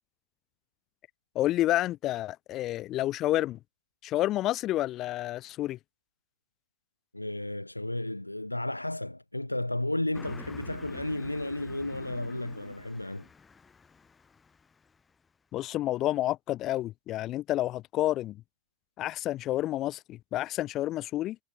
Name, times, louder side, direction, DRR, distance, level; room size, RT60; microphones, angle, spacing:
voice 1, 1.3-3.6 4.0-5.8 15.5-18.4 19.0-21.4, left 14 dB, 35° left, 1.1 m, -29 dB
voice 2, 7.1-13.3, left 1 dB, 85° left, 0.5 m, -33 dB
Car passing by, 10.1-15.1, left 5 dB, 15° left, 1.8 m, -49 dB
figure-of-eight pair, 90°, 0 cm